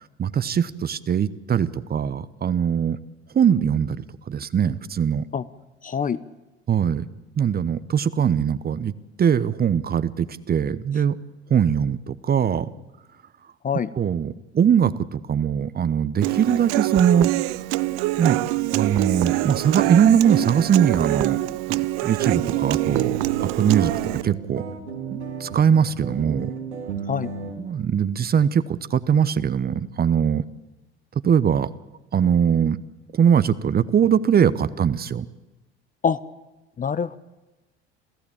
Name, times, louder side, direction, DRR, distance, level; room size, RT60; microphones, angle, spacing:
voice 1, 0.2-3.0 3.3-5.3 6.7-7.0 7.4-8.9 9.2-11.2 11.5-12.7 14.0-17.3 18.2-18.4 18.7-21.4 21.7-23.2 23.4-24.6 25.1-26.5 27.6-30.4 31.2-31.7 32.1-32.8 33.1-35.3, right 8 dB, 30° right, 15 dB, 1.0 m, -21 dB
voice 2, 5.8-6.2 13.6-13.9 27.1-27.3 36.0-36.2 36.8-37.2, left 6 dB, 25° left, 14 dB, 0.8 m, -24 dB
Human voice / Acoustic guitar, 16.2-24.2, right 19 dB, 60° right, 0.7 m, -24 dB
sound 1, 22.2-27.5, right 5 dB, 85° right, 2.8 m, -34 dB
27.5 x 15.5 x 8.7 m, 1.1 s
hypercardioid pair, 70°, 33 cm